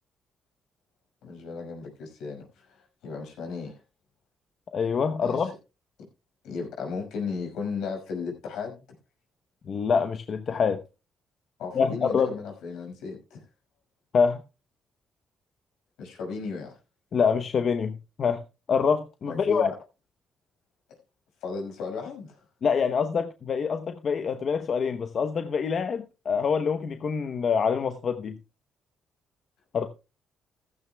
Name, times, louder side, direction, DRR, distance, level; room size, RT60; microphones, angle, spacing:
voice 1, 1.2-3.8 5.2-5.5 6.4-8.8 11.6-13.4 16.0-16.8 19.3-19.7 21.4-22.4, left 5 dB, 85° left, 5.8 m, -35 dB
voice 2, 4.7-5.5 9.6-10.8 11.7-12.3 14.1-14.4 17.1-18.4 18.7-19.7 22.6-28.4 29.7-29.9, left 6 dB, 55° left, 0.9 m, -25 dB
15.0 x 14.5 x 2.3 m
cardioid pair, 90°, 0 cm